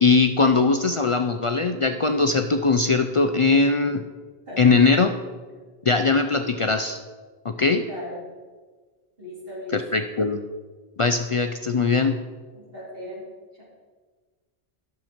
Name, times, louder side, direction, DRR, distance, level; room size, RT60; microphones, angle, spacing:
voice 1, 0.0-4.0 4.6-5.1 5.9-7.0 7.4-7.8 9.7-10.4 11.0-12.2, left 4 dB, 50° left, 6 dB, 0.4 m, -20 dB
voice 2, 7.9-8.2 9.2-9.8 12.5-13.2 13.5-13.6, left 1 dB, 65° right, -6 dB, 3.8 m, -37 dB
12.0 x 6.8 x 4.4 m, 1.4 s
omnidirectional pair, 1.1 m